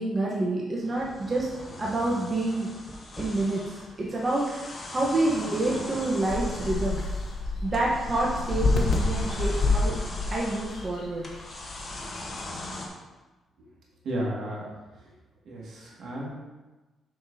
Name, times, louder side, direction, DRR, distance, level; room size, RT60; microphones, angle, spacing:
voice 1, 0.0-1.5 1.8-2.7 3.2-7.0 7.6-9.9 10.3-11.2, right 2 dB, 30° right, -4 dB, 1.1 m, -28 dB
sound 1, 0.8-12.9, left 2 dB, 30° left, 1.1 m, -40 dB
sound 2, 5.6-12.4, left 3 dB, 65° left, 1.0 m, -29 dB
voice 2, 14.0-14.6 15.5-16.3, right 1 dB, 70° right, -4 dB, 2.0 m, -33 dB
7.2 x 6.1 x 2.8 m, 1.2 s
cardioid pair, 115°, 0 cm